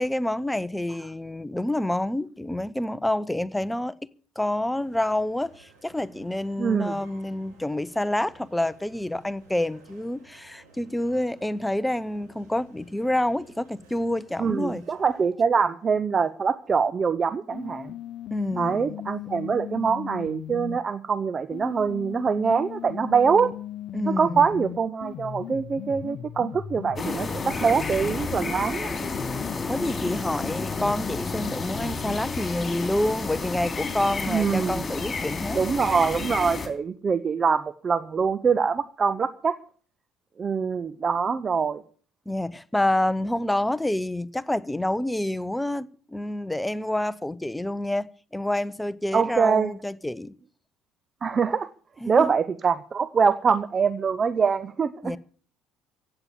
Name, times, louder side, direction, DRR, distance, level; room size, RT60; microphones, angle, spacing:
voice 1, 0.0-4.0 4.4-14.8 18.3-19.0 23.9-24.5 29.7-35.6 42.3-50.4 52.0-52.3 55.0-55.2, left 1 dB, 5° left, 0.7 m, -28 dB
sound 1, 4.7-15.3, right 3 dB, 70° right, 6.2 m, -56 dB
voice 2, 6.6-7.0 14.4-17.9 18.6-23.5 24.1-28.9 34.3-34.8 35.6-39.5 40.4-41.8 49.1-49.7 51.2-51.7 52.1-55.2, right 6 dB, 30° right, 0.7 m, -24 dB
sound 2, 17.5-20.8 21.5-28.5 29.0-32.5, left 10 dB, 45° left, 0.7 m, -38 dB
sound 3, 26.9-36.7, left 4 dB, 25° left, 3.2 m, -31 dB
16.0 x 8.9 x 7.1 m
figure-of-eight pair, 55°, 0 cm